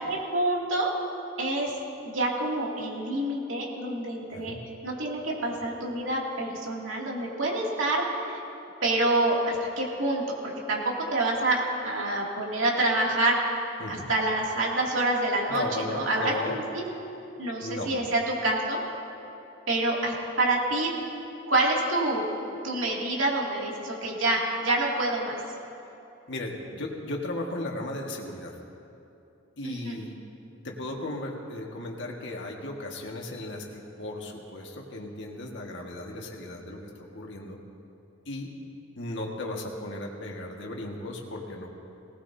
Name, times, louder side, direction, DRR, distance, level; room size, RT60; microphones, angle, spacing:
voice 1, 0.1-0.9 1.4-1.7 2.0-4.6 4.8-8.4 8.8-13.4 13.9-15.6 15.9-16.8 17.4-18.8 19.7-20.9 21.5-22.3 22.6-25.4 29.6-30.0, right 2 dB, 80° right, -3 dB, 2.6 m, -27 dB
voice 2, 15.5-16.6 17.6-17.9 26.3-28.6 29.6-30.1 30.6-37.6 38.3-38.5 39.0-41.7, left 1 dB, 65° left, 0 dB, 1.7 m, -36 dB
19.0 x 18.5 x 2.8 m, 2.8 s
head